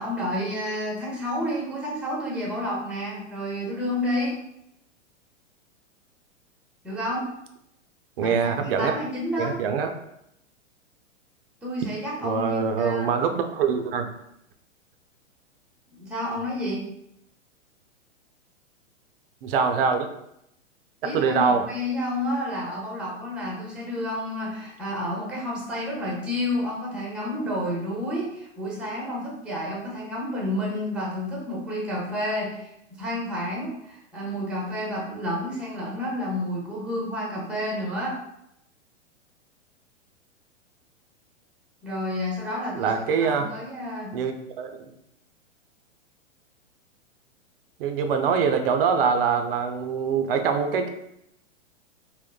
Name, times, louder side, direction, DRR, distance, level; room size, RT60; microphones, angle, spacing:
voice 1, 0.0-4.4 6.8-7.3 8.2-9.6 11.6-12.5 12.8-13.1 16.0-16.9 21.0-32.7 33.0-38.2 41.8-44.1, left 1 dB, 5° right, -3 dB, 0.6 m, -30 dB
voice 2, 8.2-8.9 9.4-9.9 12.2-14.1 19.4-20.1 21.0-21.6 42.7-43.5 44.1-44.9 47.8-50.9, right 6 dB, 50° right, 6 dB, 0.4 m, -24 dB
3.6 x 2.1 x 2.2 m, 0.78 s
hypercardioid pair, 110°, 38 cm